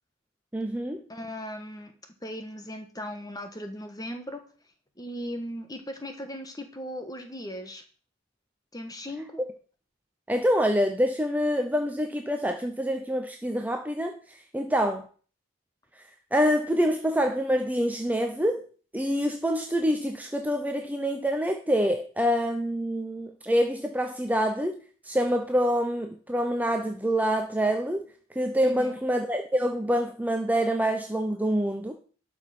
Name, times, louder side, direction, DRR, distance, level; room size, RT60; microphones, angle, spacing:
voice 1, 0.5-1.0 10.3-15.1 16.3-18.6 18.9-24.8 25.0-28.0 28.3-31.9, equal, 5° right, 4 dB, 0.7 m, -26 dB
voice 2, 1.1-1.9 2.2-4.4 5.0-7.8 8.7-9.4 28.6-29.0, equal, 15° left, 6 dB, 1.3 m, -38 dB
12.0 x 5.3 x 5.9 m, 0.40 s
head